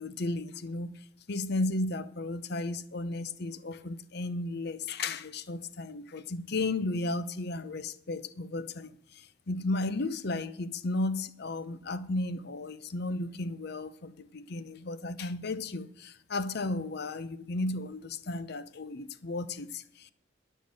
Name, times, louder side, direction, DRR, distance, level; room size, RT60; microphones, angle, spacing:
voice 1, 0.0-20.1, left 2 dB, 50° left, 0.7 m, -34 dB
11.5 x 5.5 x 7.6 m
head